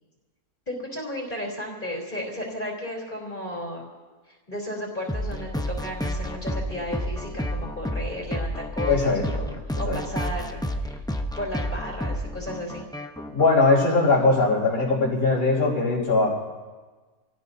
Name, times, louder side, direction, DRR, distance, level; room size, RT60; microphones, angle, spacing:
voice 1, 0.7-3.9 4.3-11.0 11.4-12.9, equal, 30° left, -1 dB, 3.6 m, -34 dB
sound 1, 5.1-13.5, equal, 5° left, 0.4 m, -30 dB
voice 2, 8.9-9.2 9.8-10.0 13.3-16.3, left 3 dB, 70° left, -9 dB, 4.4 m, -20 dB
28.0 x 18.0 x 2.7 m, 1.3 s
omnidirectional pair, 1.7 m